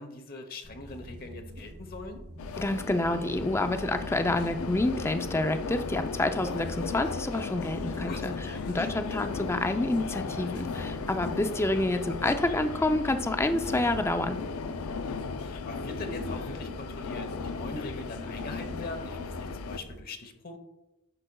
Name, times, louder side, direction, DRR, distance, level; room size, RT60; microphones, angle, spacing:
voice 1, 0.0-2.2 8.1-9.0 14.9-20.6, left 2 dB, 45° left, 6 dB, 0.9 m, -42 dB
sound 1, 0.6-20.0, equal, 85° right, 1.7 m, -45 dB
sound 2, 2.4-19.8, left 4 dB, 90° left, 0.5 m, -36 dB
voice 2, 2.6-14.4, left 2 dB, 10° left, 8 dB, 0.4 m, -28 dB
9.8 x 6.4 x 2.3 m, 0.97 s
head